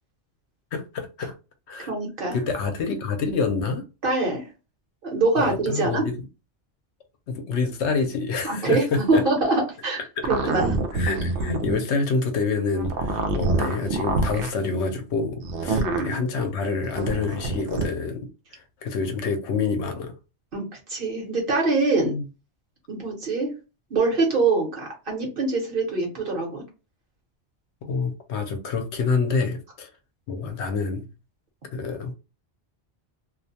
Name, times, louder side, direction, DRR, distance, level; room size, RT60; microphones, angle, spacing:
voice 1, 0.7-1.3 1.7-1.9 2.3-3.8 5.4-6.2 7.3-9.2 10.2-10.3 10.9-20.1 22.0-22.2 27.8-29.9 30.3-31.1 31.7-32.1, left 4 dB, 75° left, 0.9 m, -27 dB
voice 2, 1.9-2.4 4.0-4.5 5.0-6.0 8.4-10.0 10.3-10.7 15.7-16.1 20.5-22.1 22.9-23.5 23.9-26.6, right 3 dB, 50° right, 1.0 m, -24 dB
sound 1, 10.2-11.8 12.7-14.5 15.4-16.1 16.9-17.9, right 3 dB, 80° right, 0.9 m, -26 dB
2.5 x 2.1 x 2.7 m
omnidirectional pair, 1.2 m